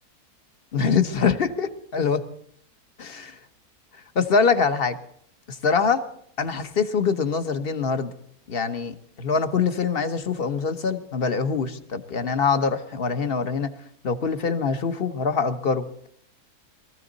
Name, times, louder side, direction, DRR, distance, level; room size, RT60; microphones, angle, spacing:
voice 1, 0.7-2.2 3.0-3.4 4.1-5.0 5.5-6.0 6.4-8.1 8.5-13.8 14.0-16.1, left 5 dB, 40° left, 9 dB, 1.2 m, -24 dB
23.0 x 15.0 x 4.0 m, 0.67 s
omnidirectional pair, 1.7 m